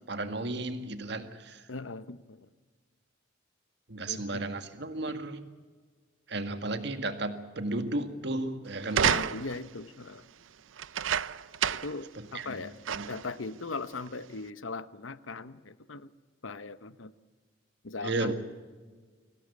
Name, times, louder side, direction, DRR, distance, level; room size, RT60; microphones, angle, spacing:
voice 1, 0.0-1.7 3.9-5.5 6.3-9.2 12.1-13.1 18.0-18.3, right 2 dB, 60° right, 8 dB, 1.9 m, -34 dB
voice 2, 1.7-2.5 4.1-4.4 9.0-10.2 11.7-12.7 13.1-16.1 16.4-17.1 17.8-18.3, left 3 dB, 90° left, 14 dB, 1.0 m, -39 dB
sound 1, 8.9-9.7 10.8-12.0 12.4-12.5 12.9-13.3 14.1-14.2, right 8 dB, 90° right, 0.6 m, -29 dB
24.0 x 17.5 x 8.5 m, 1.5 s
head